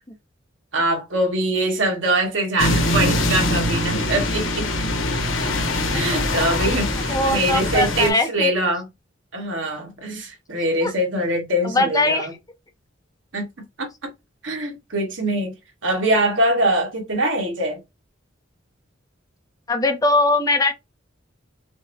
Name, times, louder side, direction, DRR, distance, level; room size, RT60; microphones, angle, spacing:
voice 1, 0.7-4.7 5.9-8.9 9.3-12.3 13.3-13.5 13.8-14.1 14.4-15.5 15.8-17.8, right 1 dB, 70° right, 1.3 m, -23 dB
sound 1, 2.6-8.1, left 1 dB, 80° left, 0.9 m, -23 dB
voice 2, 7.1-8.5 10.8-10.9 11.6-12.3 19.7-20.7, left 2 dB, 20° left, 0.5 m, -21 dB
5.1 x 2.0 x 2.6 m
head